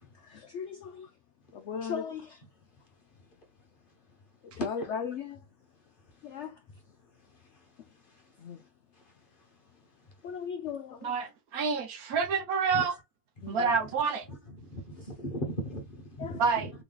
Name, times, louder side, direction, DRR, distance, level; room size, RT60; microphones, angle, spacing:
voice 1, 0.2-1.1 1.5-2.4 4.5-5.4 6.2-6.6 8.4-8.6 10.2-11.1 13.4-13.7 15.0-15.1 16.2-16.4, left 6 dB, 80° left, 0.6 m, -37 dB
voice 2, 11.0-12.9 13.5-14.3 16.4-16.7, right 5 dB, 65° right, 1.1 m, -28 dB
voice 3, 14.3-16.7, equal, 35° left, 1.1 m, -38 dB
3.2 x 2.9 x 3.8 m
omnidirectional pair, 1.8 m